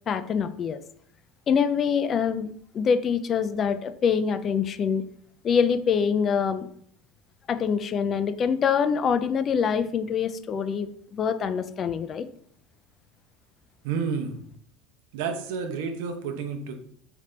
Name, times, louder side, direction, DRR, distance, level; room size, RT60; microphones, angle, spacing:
voice 1, 0.1-0.8 1.5-5.0 5.4-6.7 7.5-12.3, left 6 dB, 35° left, 11 dB, 0.4 m, -25 dB
voice 2, 13.8-14.4 15.1-16.7, right 5 dB, 80° right, 6 dB, 0.7 m, -30 dB
3.8 x 3.3 x 3.2 m, 0.64 s
supercardioid pair, 110°, 0 cm